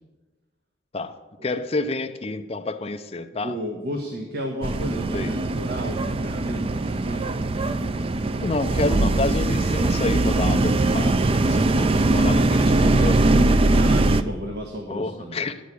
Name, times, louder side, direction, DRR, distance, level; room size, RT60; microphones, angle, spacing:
voice 1, 0.9-3.6 5.1-5.4 8.4-13.4 14.9-15.6, left 2 dB, 30° left, 7 dB, 0.5 m, -29 dB
voice 2, 3.4-7.3 13.7-15.4, equal, 50° right, 1 dB, 1.2 m, -33 dB
sound 1, 4.6-14.2, right 2 dB, 30° right, 0.4 m, -21 dB
10.0 x 6.4 x 8.4 m, 1.2 s
head